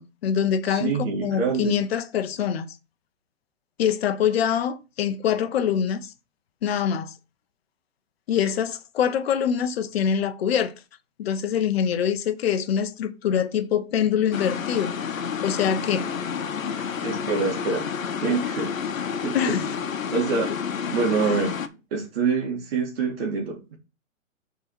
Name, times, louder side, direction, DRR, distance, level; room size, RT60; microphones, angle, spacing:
voice 1, 0.0-0.9 1.2-2.7 3.8-6.1 6.6-7.1 8.3-10.7 11.2-14.9 15.4-16.1 19.3-19.7, left 8 dB, 50° left, 0.9 m, -24 dB
voice 2, 0.7-1.8 16.6-17.9 18.1-18.7 19.2-19.6 20.1-20.5 20.9-21.6 21.9-23.8, right 5 dB, 50° right, 2.0 m, -26 dB
sound 1, 14.3-21.7, left 7 dB, 90° left, 1.0 m, -30 dB
6.7 x 4.1 x 4.5 m
hypercardioid pair, 150°, 39 cm